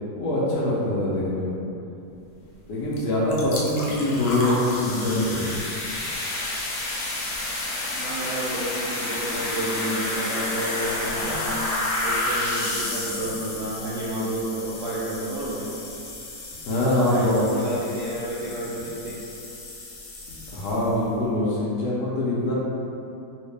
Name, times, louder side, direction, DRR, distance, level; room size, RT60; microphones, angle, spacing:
voice 1, 0.2-1.6 2.7-5.5 16.7-17.4 20.5-22.5, left 1 dB, 80° left, -8 dB, 1.2 m, -24 dB
sound 1, 2.9-3.0 3.3-21.0, left 2 dB, 65° left, 0.8 m, -31 dB
voice 2, 7.9-11.6 12.0-15.7 17.0-19.2, right 1 dB, 70° right, -8 dB, 0.7 m, -31 dB
3.1 x 2.8 x 3.2 m, 2.8 s
omnidirectional pair, 1.7 m